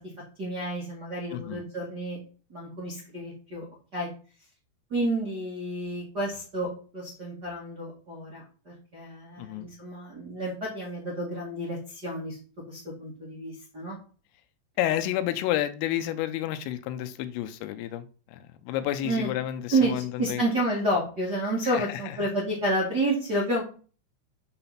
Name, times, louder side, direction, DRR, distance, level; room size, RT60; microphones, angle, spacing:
voice 1, 0.4-2.2 2.5-3.6 3.9-4.1 4.9-6.7 6.9-12.4 12.7-14.0 19.0-19.3 19.7-23.6, right 1 dB, 90° right, 0.9 m, -30 dB
voice 2, 1.3-1.6 9.4-9.7 14.8-20.4 21.7-22.2, left 12 dB, 85° left, 3.3 m, -30 dB
8.8 x 4.0 x 5.8 m
omnidirectional pair, 5.7 m